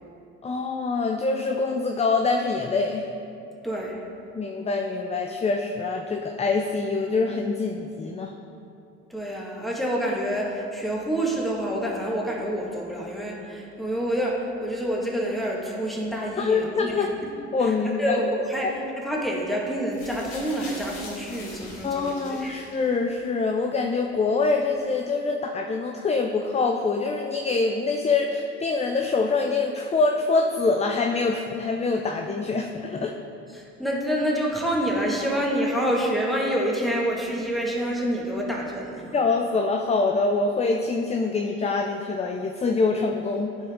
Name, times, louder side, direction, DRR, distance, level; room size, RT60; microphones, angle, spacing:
voice 1, 0.4-3.1 4.3-8.3 16.4-17.1 17.5-18.2 21.8-33.1 39.1-43.5, left 4 dB, 20° left, 3 dB, 0.5 m, -25 dB
voice 2, 3.6-4.0 9.1-17.3 17.6-18.7 19.0-22.0 22.3-22.6 33.5-39.0, equal, ahead, -3 dB, 1.7 m, -27 dB
sound 1, 19.9-23.2 24.0-24.1, left 2 dB, 80° left, 1.7 m, -43 dB
12.0 x 4.5 x 3.7 m, 2.6 s
hypercardioid pair, 70°, 36 cm